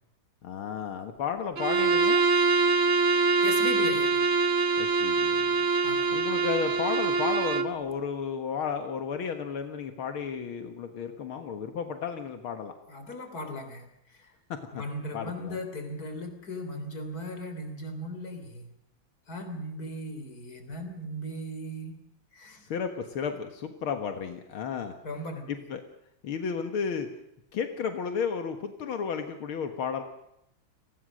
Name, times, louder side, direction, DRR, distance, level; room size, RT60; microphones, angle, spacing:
voice 1, 0.4-2.2 4.8-5.6 6.1-12.7 14.7-14.8 15.1-15.6 22.6-24.9 25.5-25.8 26.2-27.1 27.5-30.0, left 6 dB, 85° left, 6 dB, 2.4 m, -33 dB
Bowed string instrument, 1.6-7.8, right 4 dB, 45° right, 1.6 m, -24 dB
voice 2, 3.4-4.3 5.8-6.2 12.9-14.3 14.7-18.7 19.3-21.9 22.3-22.7 25.0-25.5, left 1 dB, 45° left, 7 dB, 4.1 m, -38 dB
29.5 x 19.5 x 6.4 m, 0.81 s
omnidirectional pair, 2.2 m